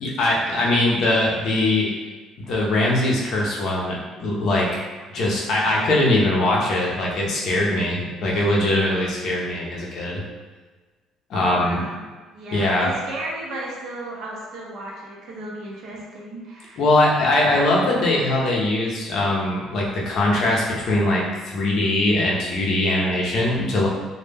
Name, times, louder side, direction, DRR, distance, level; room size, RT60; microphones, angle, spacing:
voice 1, 0.0-1.9 2.5-4.7 5.1-10.2 11.3-11.8 12.5-12.9 16.8-23.9, left 1 dB, 50° left, -4 dB, 0.5 m, -21 dB
voice 2, 11.3-12.0 12.3-16.8, right 1 dB, 50° right, -3 dB, 0.6 m, -34 dB
2.1 x 2.1 x 3.2 m, 1.3 s
cardioid pair, 165°, 0 cm